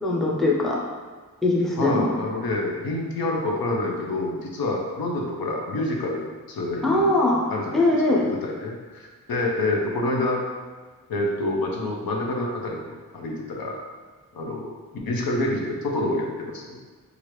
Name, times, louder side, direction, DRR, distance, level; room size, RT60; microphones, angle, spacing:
voice 1, 0.0-0.8 1.4-2.1 6.8-7.5 7.7-8.3, left 2 dB, ahead, -3 dB, 0.4 m, -21 dB
voice 2, 1.8-7.1 7.5-10.4 11.1-13.8 14.3-14.7 15.1-16.8, left 2 dB, 85° left, 0 dB, 0.6 m, -27 dB
3.1 x 2.4 x 3.0 m, 1.4 s
wide cardioid pair, 115°, 35 cm